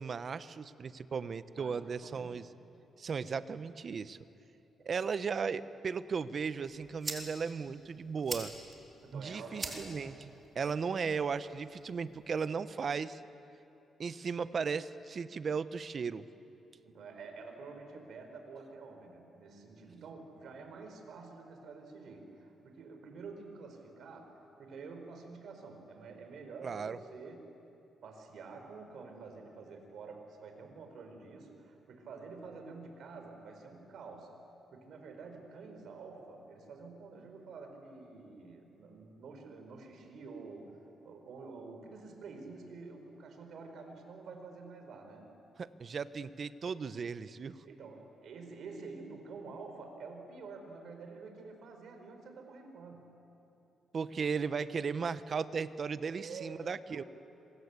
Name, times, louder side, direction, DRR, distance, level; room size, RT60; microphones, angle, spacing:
voice 1, 0.0-2.5 3.0-4.2 4.8-8.5 9.1-13.2 14.0-16.3 26.6-27.0 45.6-47.6 53.9-57.0, right 5 dB, 50° right, 13 dB, 0.9 m, -36 dB
voice 2, 1.5-2.4 9.0-9.9 16.8-27.5 28.0-34.3 34.7-45.3 47.6-53.0 56.1-56.6 56.9-57.1, right 4 dB, 70° right, 5 dB, 4.6 m, -48 dB
sound 1, 6.4-12.4, right 3 dB, 30° right, 4.1 m, -46 dB
26.5 x 24.0 x 8.3 m, 2.9 s
cardioid pair, 90°, 0 cm